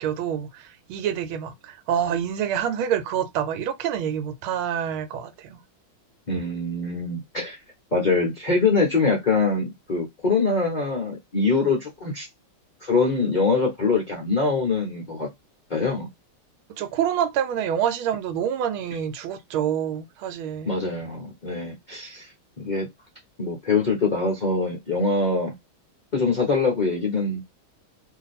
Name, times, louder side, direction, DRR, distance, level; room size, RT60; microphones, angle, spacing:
voice 1, 0.0-5.6 16.8-20.8, right 9 dB, 90° right, 1.5 m, -27 dB
voice 2, 6.3-7.6 7.9-12.3 12.8-15.3 15.7-16.1 20.7-22.3 22.6-22.9 23.4-25.5 26.1-27.4, left 3 dB, 85° left, 0.4 m, -23 dB
2.8 x 2.6 x 4.0 m
omnidirectional pair, 2.2 m